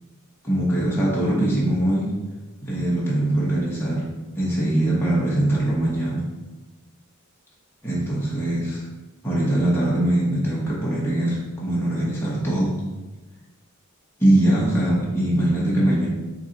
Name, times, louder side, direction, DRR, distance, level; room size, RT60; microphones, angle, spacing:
voice 1, 0.4-2.2 2.6-4.1 4.4-6.2 7.8-8.8 9.2-12.8 14.2-16.1, right 1 dB, 10° left, -7 dB, 0.9 m, -22 dB
3.8 x 2.8 x 3.9 m, 1.2 s
head